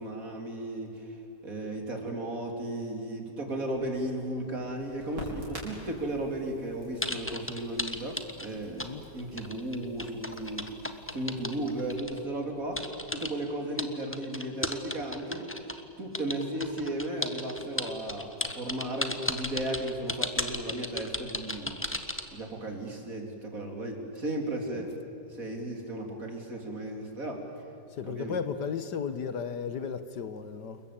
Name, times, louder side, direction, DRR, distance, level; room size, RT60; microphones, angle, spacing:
voice 1, 0.0-10.7 11.1-12.8 13.1-15.5 16.0-21.8 22.3-24.9 25.3-27.4 28.1-28.4, right 1 dB, 45° right, 3.9 m, -35 dB
Crackle, 3.7-12.0, right 1 dB, 70° right, 6.0 m, -48 dB
sound 1, 7.0-8.9 9.2-12.2 12.8-13.3 13.8-15.8 16.1-22.3, left 1 dB, 10° left, 1.2 m, -34 dB
voice 2, 27.9-30.8, left 6 dB, 65° left, 1.7 m, -35 dB
29.0 x 21.5 x 8.8 m
omnidirectional pair, 2.0 m